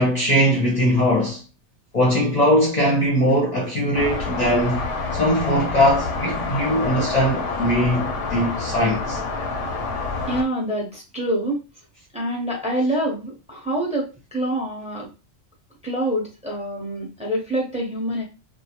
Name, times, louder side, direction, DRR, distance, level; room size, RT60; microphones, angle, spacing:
voice 1, 0.0-1.4 1.9-4.8 5.1-9.2, equal, 45° left, 0.7 m, -20 dB
sound 1, 3.9-10.4, left 3 dB, 85° left, 0.9 m, -27 dB
voice 2, 10.3-11.6 12.1-15.1 15.8-18.2, right 1 dB, 5° right, 0.7 m, -26 dB
2.3 x 2.0 x 2.8 m
omnidirectional pair, 1.2 m